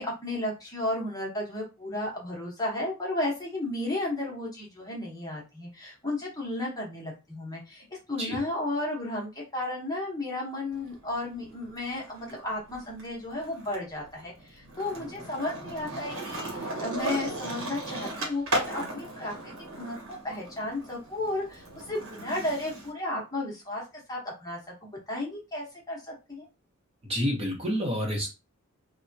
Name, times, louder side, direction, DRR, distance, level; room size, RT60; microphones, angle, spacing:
voice 1, 0.0-23.8 24.1-26.5, left 1 dB, 15° left, -3 dB, 0.9 m, -33 dB
Skateboard, 10.7-12.3 12.7-22.9, right 1 dB, 60° right, 1.0 m, -36 dB
voice 2, 27.0-28.3, equal, 25° right, -2 dB, 0.9 m, -28 dB
3.3 x 2.2 x 2.7 m, 0.28 s
head